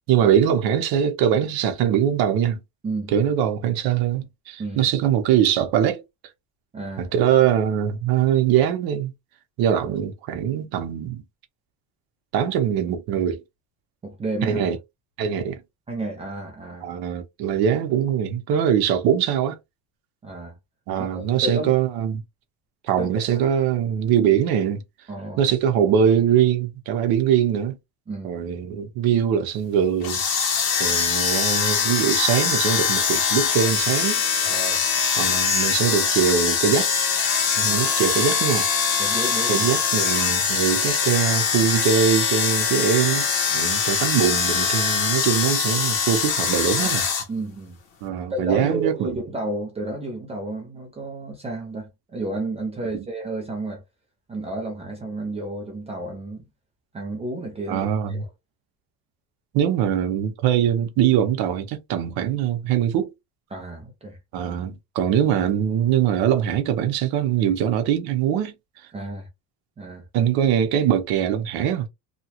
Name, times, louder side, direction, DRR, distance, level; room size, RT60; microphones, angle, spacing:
voice 1, 0.1-2.6 3.1-6.0 7.0-9.1 9.6-11.2 12.3-13.4 14.4-14.8 15.2-15.6 16.8-19.6 20.9-22.2 22.8-24.8 25.4-27.8 28.2-30.2 30.8-34.2 35.2-36.9 37.6-38.7 39.5-47.0 48.0-49.2 52.9-53.0 57.7-58.2 59.5-63.1 64.3-68.5 70.1-71.9, right 9 dB, 60° right, 0.8 m, -22 dB
voice 2, 6.7-7.1 14.0-14.6 15.9-16.9 20.2-20.6 21.1-21.7 23.0-23.4 25.1-25.4 28.1-28.4 34.4-34.8 35.2-35.3 37.6-38.0 39.0-39.7 46.8-46.9 47.3-47.8 48.3-53.8 54.3-56.4 56.9-58.2 63.5-64.4 68.9-69.3 69.8-70.1, right 2 dB, 15° right, 0.4 m, -31 dB
sound 1, 30.0-47.2, left 6 dB, 65° left, 1.0 m, -22 dB
2.8 x 2.3 x 2.8 m
cardioid pair, 175°, 41 cm